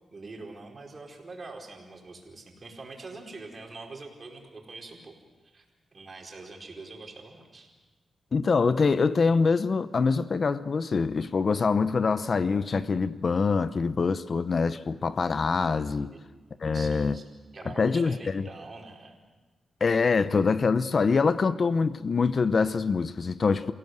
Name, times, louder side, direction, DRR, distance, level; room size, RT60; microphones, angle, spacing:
voice 1, 0.1-5.1 5.4-5.6 5.9-7.7 16.1-16.2 16.7-17.3 17.5-19.2, right 3 dB, 40° right, 4.9 m, -44 dB
voice 2, 8.3-16.1 16.6-17.2 17.8-18.5 19.8-23.7, left 4 dB, 50° left, 0.8 m, -24 dB
28.0 x 17.0 x 8.0 m
cardioid pair, 85°, 0 cm